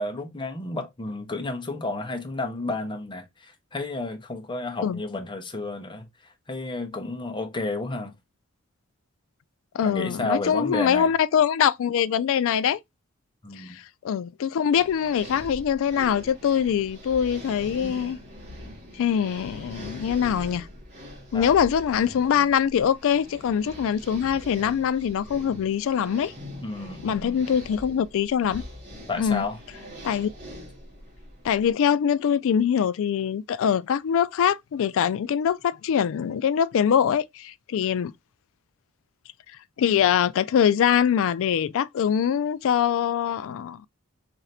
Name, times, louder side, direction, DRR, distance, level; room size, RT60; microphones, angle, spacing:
voice 1, 0.0-6.1 6.5-8.1 9.8-11.1 13.4-13.8 21.3-21.5 26.6-27.4 29.1-29.6, left 2 dB, 20° left, 0.7 m, -31 dB
voice 2, 9.7-12.8 13.6-18.2 19.0-20.7 21.3-26.3 27.0-28.6 29.2-29.5 30.0-30.3 31.4-38.1 39.8-43.8, left 8 dB, 65° left, 0.3 m, -23 dB
sound 1, 14.8-31.7, equal, 35° right, 1.8 m, -42 dB
3.2 x 2.6 x 4.1 m
head